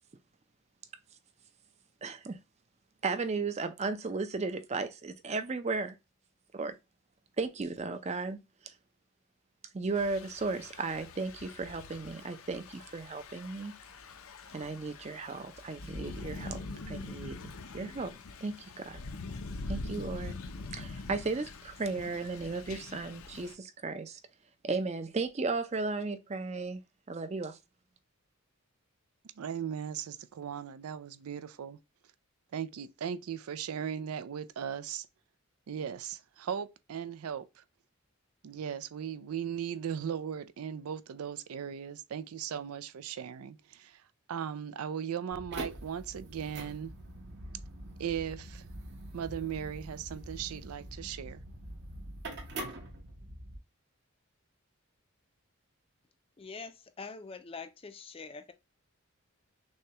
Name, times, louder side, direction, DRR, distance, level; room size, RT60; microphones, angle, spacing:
voice 1, 2.0-2.4 3.0-6.0 6.5-6.8 7.4-8.7 9.7-13.7 14.5-16.6 16.9-17.4 17.7-18.1 18.4-19.0 19.7-20.4 20.7-24.2 24.6-26.8 27.1-27.6, right 3 dB, 30° right, 0.5 m, -35 dB
Thunder / Rain, 9.9-23.5, left 3 dB, 75° left, 0.6 m, -44 dB
voice 2, 29.2-31.8 32.5-35.1 35.7-37.6 38.4-46.9 48.0-48.7 49.1-51.4, right 8 dB, 90° right, 0.4 m, -38 dB
sound 1, 45.3-53.6, right 1 dB, 50° right, 0.9 m, -44 dB
voice 3, 56.4-58.5, left 4 dB, 25° left, 0.4 m, -44 dB
6.2 x 2.3 x 2.8 m
head